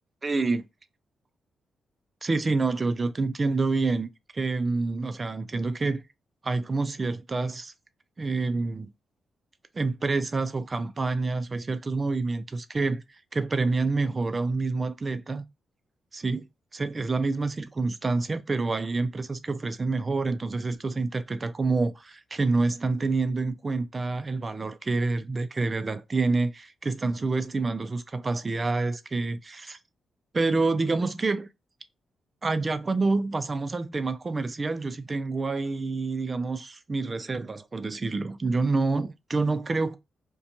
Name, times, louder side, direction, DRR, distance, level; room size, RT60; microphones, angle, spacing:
voice 1, 0.2-0.7 2.2-6.0 6.4-7.7 8.2-8.9 9.7-13.0 13.3-15.4 16.1-16.5 16.7-29.8 30.3-31.5 32.4-40.0, right 3 dB, 35° right, 0.4 m, -27 dB
2.5 x 2.2 x 2.8 m
supercardioid pair, 55°, 0 cm